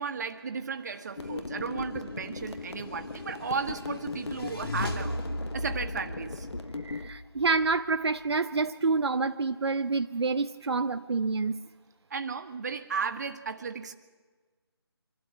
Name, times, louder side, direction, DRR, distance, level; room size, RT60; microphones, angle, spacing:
voice 1, 0.0-5.1 5.5-6.5 12.1-13.9, right 5 dB, 40° right, 7 dB, 1.4 m, -34 dB
sound 1, 1.2-7.1, left 3 dB, 85° left, 1.4 m, -38 dB
sound 2, 2.7-8.3, left 1 dB, 60° left, 2.6 m, -38 dB
voice 2, 6.8-11.6, right 4 dB, 75° right, 8 dB, 0.7 m, -28 dB
24.5 x 12.5 x 9.6 m, 1.4 s
figure-of-eight pair, 165°, 14 cm